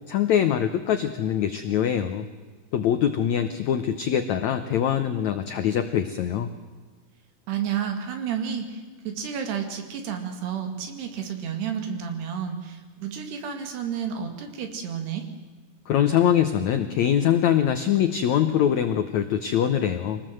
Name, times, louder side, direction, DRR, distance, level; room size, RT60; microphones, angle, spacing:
voice 1, 0.1-2.3 2.7-6.5 15.9-20.2, left 9 dB, 85° left, 9 dB, 1.6 m, -23 dB
voice 2, 7.5-15.3, right 8 dB, 85° right, 5 dB, 4.5 m, -31 dB
25.0 x 18.5 x 7.8 m, 1.4 s
omnidirectional pair, 4.6 m